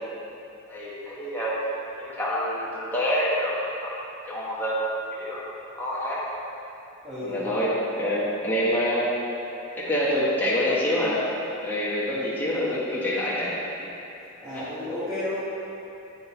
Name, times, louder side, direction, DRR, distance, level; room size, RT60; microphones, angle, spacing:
voice 1, 0.7-1.6 2.0-3.9 4.3-4.8 5.2-5.4 5.7-6.2 7.2-9.1 9.7-11.2 11.6-13.5 14.5-14.7, equal, 10° left, -8 dB, 1.1 m, -26 dB
voice 2, 7.0-7.4 14.4-15.4, left 1 dB, 20° right, -14 dB, 1.5 m, -32 dB
8.3 x 6.4 x 4.4 m, 2.8 s
head